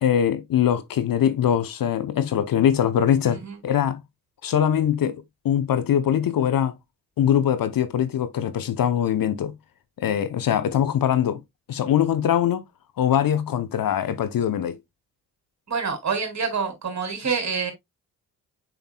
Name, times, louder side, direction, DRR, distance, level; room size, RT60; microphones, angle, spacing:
voice 1, 0.0-4.0 4.4-6.7 7.2-9.5 10.0-11.4 11.7-12.6 13.0-14.8, left 9 dB, 50° left, 0.8 m, -22 dB
voice 2, 3.2-3.6 15.7-17.7, right 5 dB, 40° right, 3.0 m, -27 dB
6.9 x 6.1 x 2.2 m
hypercardioid pair, 40°, 44 cm